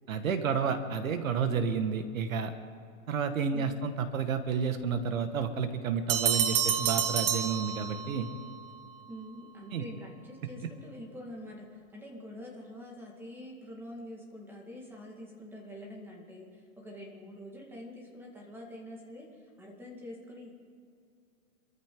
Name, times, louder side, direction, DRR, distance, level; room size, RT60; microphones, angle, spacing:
voice 1, 0.1-2.5 3.1-8.3 9.7-9.8, right 6 dB, 70° right, 8 dB, 1.9 m, -30 dB
voice 2, 3.5-3.9 9.1-20.5, left 1 dB, 5° right, -1 dB, 1.9 m, -46 dB
sound 1, 6.1-8.3, right 8 dB, 40° right, 1.1 m, -29 dB
26.0 x 14.0 x 3.9 m, 2.3 s
hypercardioid pair, 160°, 42 cm